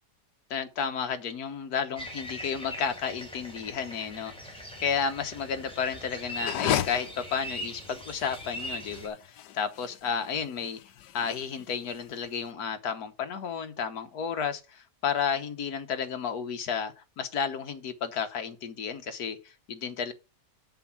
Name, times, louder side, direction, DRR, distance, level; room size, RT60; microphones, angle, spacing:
voice 1, 0.5-10.8 11.1-20.1, left 6 dB, 65° left, 1.5 m, -32 dB
sound 1, 2.0-9.1, equal, 5° left, 3.2 m, -41 dB
sound 2, 6.3-12.4, left 11 dB, 85° left, 1.3 m, -35 dB
7.7 x 7.0 x 5.9 m
omnidirectional pair, 1.8 m